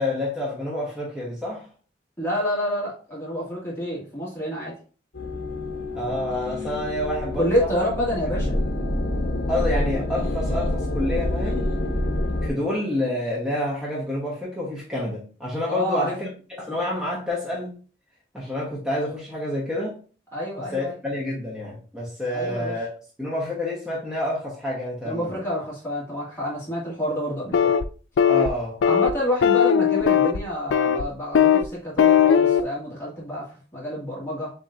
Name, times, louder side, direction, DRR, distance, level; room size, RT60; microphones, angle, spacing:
voice 1, 0.0-1.7 5.9-7.7 8.3-8.5 9.5-11.7 12.4-16.3 16.6-17.8 18.3-19.9 20.7-22.9 23.2-25.4 28.3-28.8, left 1 dB, 5° right, -6 dB, 1.0 m, -28 dB
voice 2, 2.2-4.7 7.3-8.6 15.7-16.1 20.3-21.0 22.3-22.7 25.0-27.7 28.8-34.5, equal, 15° left, -7 dB, 2.0 m, -28 dB
sound 1, 5.1-12.5, left 1 dB, 65° left, 0.8 m, -27 dB
sound 2, 27.5-27.8 28.2-28.5 28.8-29.1 29.4-30.4 30.7-31.0 31.3-31.7 32.0-32.6, left 8 dB, 85° left, 0.3 m, -18 dB
7.0 x 3.0 x 2.5 m, 0.39 s
head